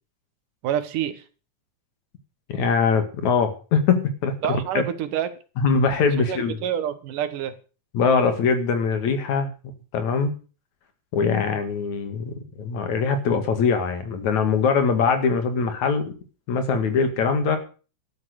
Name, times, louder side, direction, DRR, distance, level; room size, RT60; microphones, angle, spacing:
voice 1, 0.6-1.2 4.4-5.3 6.2-7.6, right 10 dB, 80° right, 3.0 m, -27 dB
voice 2, 2.5-4.8 5.6-6.5 7.9-9.5 9.9-10.3 11.1-16.0 16.5-17.6, left 5 dB, 65° left, 3.3 m, -22 dB
13.0 x 11.0 x 6.5 m
omnidirectional pair, 3.6 m